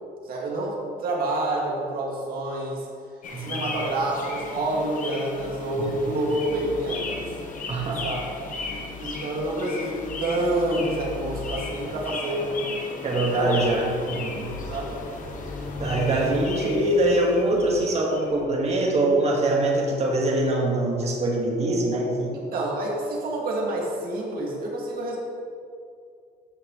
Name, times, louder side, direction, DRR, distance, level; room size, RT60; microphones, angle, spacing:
voice 1, 0.2-2.9 3.4-7.3 7.8-8.2 9.0-12.7 13.2-13.6 13.9-14.0 14.7-15.0 16.1-16.3 22.3-25.2, right 1 dB, 60° right, -3 dB, 2.5 m, -28 dB
sound 1, 3.2-18.4, left 3 dB, 50° left, 1.4 m, -35 dB
voice 2, 7.7-8.0 13.0-14.5 15.8-22.4, right 1 dB, 40° right, -1 dB, 2.0 m, -23 dB
14.0 x 6.1 x 3.3 m, 2.3 s
cardioid pair, 110°, 17 cm